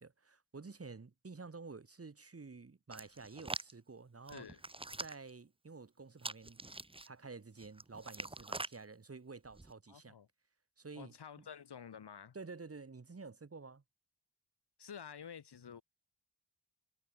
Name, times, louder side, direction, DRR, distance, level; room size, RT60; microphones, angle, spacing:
voice 1, 0.0-4.5 5.0-6.6 7.1-10.1 10.8-11.4 12.3-13.8, right 4 dB, 30° right, 1.5 m, -51 dB
Hands, 2.9-3.7 4.3-5.3 6.2-7.1 7.6-8.8 9.5-9.7, right 2 dB, 10° right, 0.7 m, -44 dB
voice 2, 4.3-4.6 9.9-10.3 10.9-12.4 14.8-15.8, left 7 dB, 65° left, 1.3 m, -50 dB
cardioid pair, 60°, 44 cm